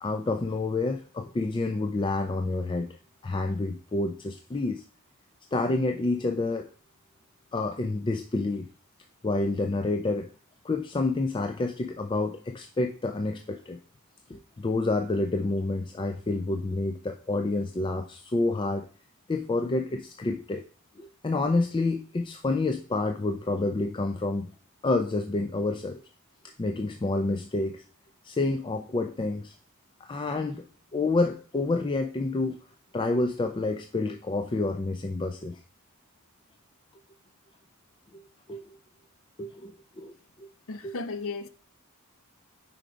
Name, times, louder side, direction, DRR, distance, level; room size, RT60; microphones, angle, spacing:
voice 1, 0.0-2.9 3.2-4.8 5.5-6.7 7.5-8.7 9.2-10.3 10.6-13.8 14.3-18.9 19.3-20.6 21.0-24.5 24.8-26.0 26.6-27.8 28.2-29.6 30.0-30.7 30.9-32.6 32.9-35.6 38.1-38.2 38.5-38.6 39.4-40.5 40.8-40.9, left 2 dB, 20° left, 0.3 m, -28 dB
voice 2, 40.7-41.5, left 3 dB, 65° left, 0.6 m, -34 dB
5.1 x 4.6 x 4.9 m
head